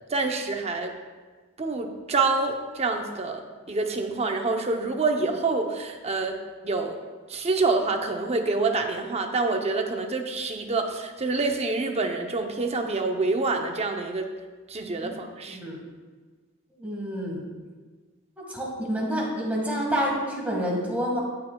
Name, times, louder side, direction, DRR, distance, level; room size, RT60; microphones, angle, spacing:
voice 1, 0.1-0.9 1.6-7.0 7.3-14.3 14.7-15.6, right 3 dB, 30° right, 4 dB, 0.7 m, -27 dB
voice 2, 15.4-15.8 16.8-17.4 18.4-21.2, equal, 5° right, -3 dB, 1.7 m, -28 dB
16.5 x 5.7 x 2.3 m, 1.4 s
head